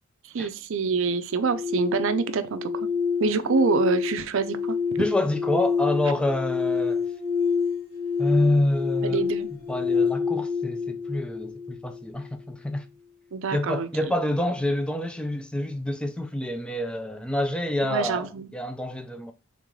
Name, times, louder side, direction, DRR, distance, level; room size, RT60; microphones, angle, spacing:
voice 1, 0.2-2.9 3.2-4.8 9.0-9.5 13.3-13.9 17.8-18.5, right 5 dB, 65° right, 0.5 m, -26 dB
sound 1, 1.3-12.3, left 6 dB, 75° left, 1.5 m, -28 dB
voice 2, 5.0-7.0 8.2-9.2 9.7-12.8 13.5-19.3, left 1 dB, 5° left, 0.4 m, -27 dB
3.7 x 3.6 x 3.1 m
head